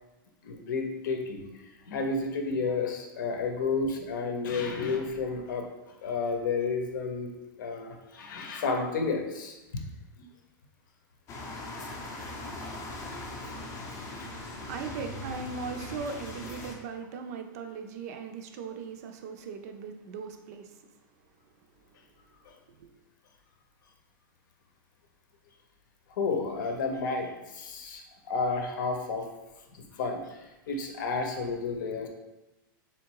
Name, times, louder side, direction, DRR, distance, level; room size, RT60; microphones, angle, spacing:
voice 1, 0.4-5.7 6.0-7.3 7.6-9.8 10.2-10.3 14.2-14.3 22.5-22.6 26.2-29.3 29.7-30.4 30.7-32.1, left 4 dB, 65° left, 4 dB, 0.8 m, -31 dB
sound 1, 11.3-16.7, left 2 dB, 25° left, 0.6 m, -40 dB
voice 2, 14.0-20.9 22.7-23.0, right 5 dB, 45° right, 6 dB, 0.5 m, -39 dB
3.6 x 3.1 x 4.6 m, 1.0 s
supercardioid pair, 170°, 11 cm